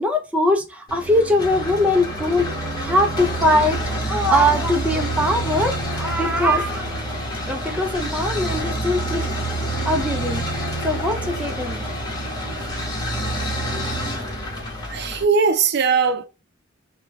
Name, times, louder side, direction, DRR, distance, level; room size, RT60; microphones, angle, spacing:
voice 1, 0.0-6.9 7.5-9.3 9.9-11.8, left 1 dB, 5° right, 0.4 m, -21 dB
sound 1, 0.9-15.2, right 1 dB, 20° left, 1.0 m, -27 dB
voice 2, 14.9-16.3, right 5 dB, 60° right, 0.5 m, -19 dB
3.1 x 2.1 x 2.9 m
head